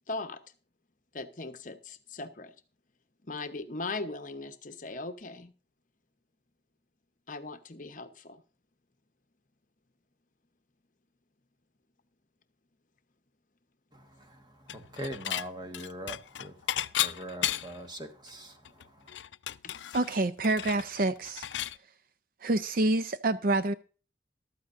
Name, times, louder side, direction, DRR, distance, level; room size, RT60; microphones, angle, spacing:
voice 1, 0.1-0.4 1.1-2.5 3.3-5.5 7.3-8.4 19.6-20.0, left 3 dB, 45° left, 0.9 m, -39 dB
voice 2, 13.9-19.1, right 1 dB, 25° right, 1.5 m, -43 dB
Dishes pots and pans / Chink clink, 14.7-15.5 15.7-17.9 18.3-18.4 18.7-21.8, left 12 dB, 80° left, 0.4 m, -34 dB
voice 3, 19.9-21.5 22.4-23.7, right 2 dB, 50° right, 0.5 m, -27 dB
14.5 x 12.5 x 2.6 m
head